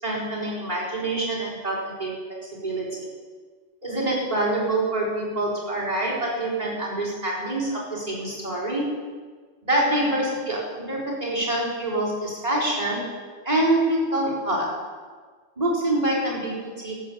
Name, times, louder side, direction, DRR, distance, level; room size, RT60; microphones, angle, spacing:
voice 1, 0.0-2.2 2.6-3.1 3.8-8.9 9.6-13.2 13.4-14.9 15.6-17.0, right 1 dB, 35° right, -6 dB, 4.2 m, -26 dB
14.0 x 8.7 x 6.9 m, 1.5 s
omnidirectional pair, 1.2 m